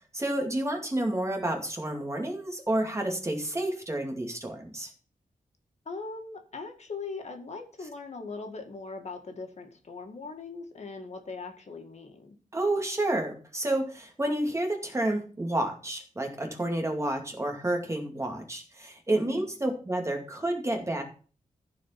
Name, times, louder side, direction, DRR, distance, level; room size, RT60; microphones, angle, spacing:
voice 1, 0.1-4.9 12.5-21.0, right 1 dB, 20° right, 3 dB, 2.4 m, -30 dB
voice 2, 5.9-12.4 19.1-19.5, left 4 dB, 55° left, 4 dB, 2.0 m, -40 dB
14.5 x 4.9 x 5.8 m, 0.38 s
wide cardioid pair, 125°, 14 cm